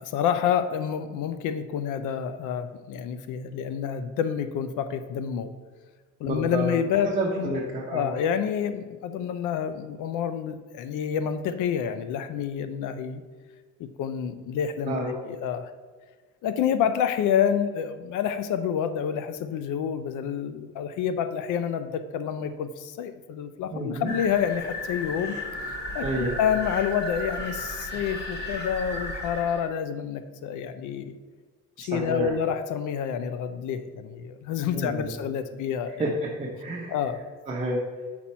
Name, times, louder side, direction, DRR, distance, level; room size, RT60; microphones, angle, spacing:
voice 1, 0.0-5.5 6.2-7.1 7.4-7.6 7.9-13.2 13.8-15.7 16.4-25.4 25.6-31.2 31.8-36.1 36.9-37.2, left 8 dB, 75° left, 11 dB, 0.5 m, -28 dB
voice 2, 6.2-6.8 7.0-8.1 14.9-15.1 23.7-24.1 26.0-26.4 31.8-32.3 34.7-35.2 36.0-37.0 37.5-37.8, right 1 dB, 20° right, -4 dB, 0.9 m, -29 dB
sound 1, 24.1-29.7, left 1 dB, 35° left, 1.1 m, -34 dB
5.8 x 4.3 x 4.3 m, 1.4 s
cardioid pair, 115°, 31 cm